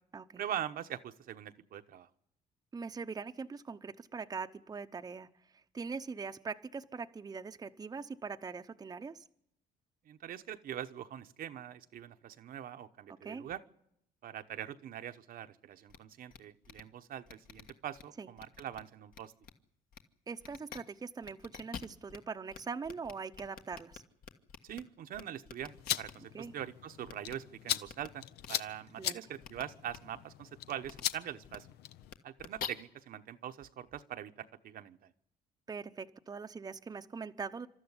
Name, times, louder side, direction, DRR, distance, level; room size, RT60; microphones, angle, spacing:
voice 1, 0.4-2.1 10.1-13.6 14.2-19.3 24.6-31.7 32.2-35.1, right 10 dB, 60° right, 8 dB, 1.0 m, -43 dB
voice 2, 2.7-5.3 5.5-9.2 13.1-13.4 18.2-18.3 20.3-24.0 26.3-26.5 29.0-29.2 35.7-37.7, right 5 dB, 20° right, 7 dB, 0.8 m, -42 dB
sound 1, 15.9-16.0 16.3-16.4 16.6-16.8 17.3-18.0 18.4-18.8 19.1-19.5 19.9-20.0 20.4-20.8 21.2-22.2 22.5-22.6 22.8-24.8 25.1-26.1 27.1-27.3 27.9-28.1 28.4-28.5 29.4-29.6 29.9-30.0 30.8-31.0 31.4-31.6 32.0-32.7, left 7 dB, 60° left, 1.6 m, -46 dB
sound 2, 25.6-32.1, left 12 dB, 75° left, 0.8 m, -40 dB
27.0 x 13.0 x 9.8 m, 0.79 s
cardioid pair, 110°, 17 cm